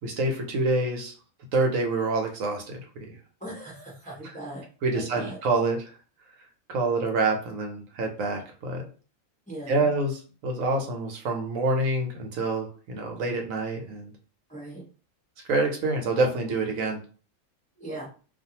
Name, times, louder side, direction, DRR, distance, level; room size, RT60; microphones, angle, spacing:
voice 1, 0.0-1.1 1.5-2.8 3.1-3.2 4.8-5.8 6.7-8.9 9.7-14.1 15.5-17.0, right 2 dB, 80° right, 2 dB, 1.1 m, -26 dB
voice 2, 3.4-4.6 4.9-5.4 9.5-9.9 14.5-14.8 17.8-18.0, right 1 dB, 5° left, -5 dB, 0.7 m, -39 dB
2.4 x 2.4 x 2.8 m, 0.38 s
omnidirectional pair, 1.4 m